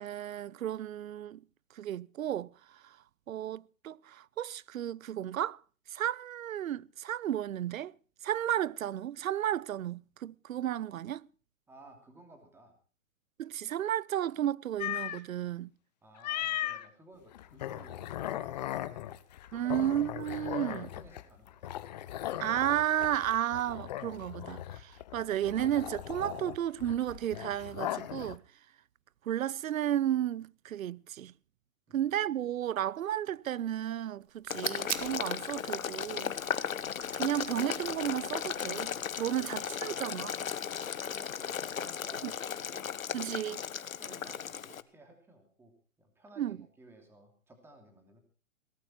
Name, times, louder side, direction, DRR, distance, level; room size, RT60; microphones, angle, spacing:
voice 1, 0.0-1.4 1.8-2.5 2.8-3.0 3.3-5.6 5.9-7.9 8.2-11.3 13.4-15.7 19.5-20.9 22.4-28.4 29.3-31.3 31.9-36.3 37.1-40.4 42.2-42.3 43.1-43.6 46.4-46.6, right 11 dB, 85° right, 0.6 m, -33 dB
voice 2, 11.7-12.8 16.0-19.3 19.6-20.0 20.8-21.7 31.9-32.2 39.4-39.6 41.1-42.4 42.7-42.9 44.0-48.2, right 1 dB, 5° right, 2.8 m, -56 dB
sound 1, 14.8-15.2 16.2-16.8 17.3-28.4, left 13 dB, 35° left, 0.8 m, -38 dB
sound 2, 34.2-39.4, right 8 dB, 70° right, 1.8 m, -43 dB
Boiling, 34.5-44.8, left 8 dB, 90° left, 1.1 m, -36 dB
18.0 x 14.0 x 4.4 m
hypercardioid pair, 150°, 40 cm